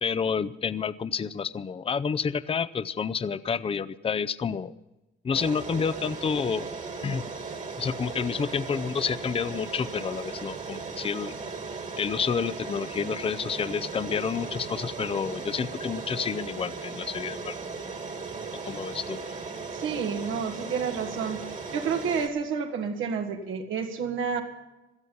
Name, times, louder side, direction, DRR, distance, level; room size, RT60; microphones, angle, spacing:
voice 1, 0.0-4.7 5.2-6.7 7.0-7.2 7.8-11.3 12.0-17.6 18.6-19.2, left 6 dB, 30° left, 15 dB, 0.5 m, -29 dB
sound 1, 5.3-22.3, right 4 dB, 40° right, 1.9 m, -37 dB
voice 2, 19.7-21.4 21.7-24.4, right 6 dB, 85° right, 5 dB, 1.9 m, -30 dB
18.0 x 13.0 x 5.5 m, 1.0 s
cardioid pair, 90°, 20 cm